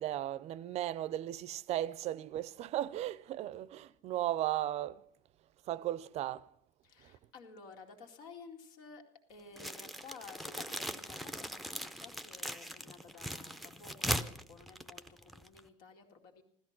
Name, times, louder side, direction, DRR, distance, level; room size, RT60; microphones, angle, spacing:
voice 1, 0.0-5.0 5.7-6.5 7.0-7.2, right 13 dB, 50° right, 0.5 m, -36 dB
voice 2, 6.8-9.0 9.3-16.4, left 4 dB, 80° left, 2.4 m, -53 dB
sound 1, 9.6-15.7, equal, ahead, 0.6 m, -40 dB
15.5 x 13.5 x 5.9 m
cardioid pair, 155°, 14 cm